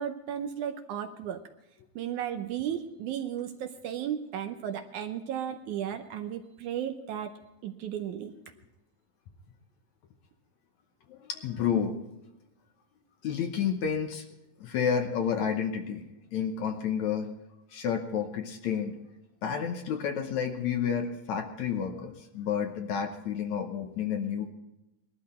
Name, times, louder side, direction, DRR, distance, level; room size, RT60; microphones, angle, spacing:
voice 1, 0.0-1.4 2.0-7.4 7.6-8.3, right 9 dB, 75° right, 7 dB, 2.0 m, -34 dB
voice 2, 11.1-12.0 13.2-14.2 14.6-16.0 16.3-17.3 17.7-18.9 19.4-24.5, left 7 dB, 65° left, 5 dB, 2.0 m, -30 dB
21.0 x 12.5 x 4.3 m, 0.94 s
omnidirectional pair, 4.0 m